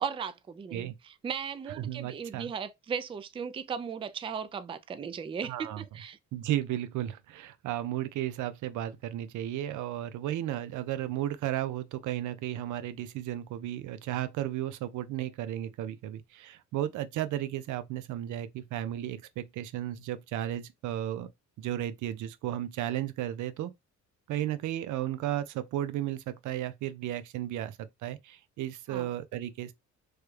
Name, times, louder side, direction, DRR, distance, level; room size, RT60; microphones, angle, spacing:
voice 1, 0.0-6.2 28.9-29.1, right 7 dB, 20° right, 0.3 m, -37 dB
voice 2, 1.8-2.5 5.4-5.8 6.3-21.3 21.6-23.7 24.3-29.7, right 12 dB, 75° right, 0.5 m, -34 dB
3.1 x 2.3 x 3.1 m
cardioid pair, 90°, 30 cm